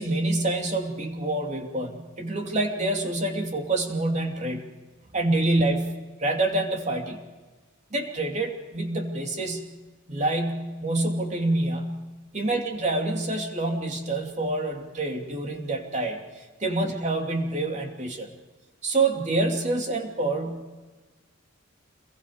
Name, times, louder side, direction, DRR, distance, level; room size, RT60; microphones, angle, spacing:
voice 1, 0.0-4.6 5.1-7.2 7.9-9.7 10.1-12.1 12.3-18.3 18.8-20.6, right 2 dB, 35° right, 2 dB, 2.8 m, -27 dB
28.5 x 22.0 x 5.2 m, 1.2 s
head